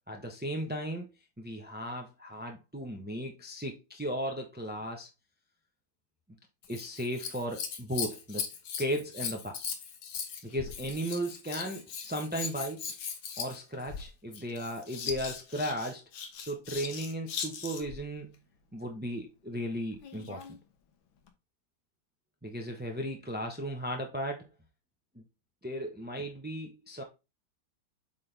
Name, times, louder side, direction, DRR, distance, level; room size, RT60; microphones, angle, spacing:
voice 1, 0.1-1.1 1.4-5.1 6.7-8.5 8.8-9.6 10.4-12.9 13.4-16.0 16.4-18.4 18.7-20.4 22.4-24.5 25.1-25.2 25.6-27.0, equal, 10° right, 0.4 m, -36 dB
Scissors, 6.6-18.0 19.9-20.6 21.3-21.4, left 7 dB, 75° left, 1.9 m, -39 dB
8.5 x 4.1 x 3.4 m
omnidirectional pair, 2.3 m